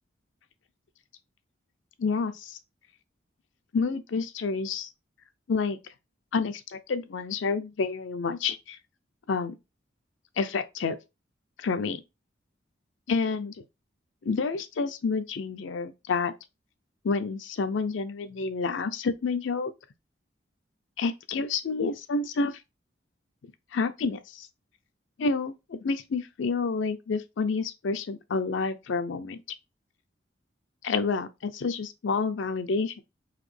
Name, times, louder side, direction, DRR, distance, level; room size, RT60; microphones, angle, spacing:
voice 1, 2.0-2.6 3.7-4.9 5.5-5.8 6.3-8.8 9.3-9.6 10.4-11.0 11.6-12.0 13.1-13.5 14.2-16.3 17.0-19.7 21.0-22.5 23.7-24.5 25.2-29.4 30.8-33.0, left 4 dB, 75° left, 0.5 m, -29 dB
4.1 x 2.8 x 3.2 m
head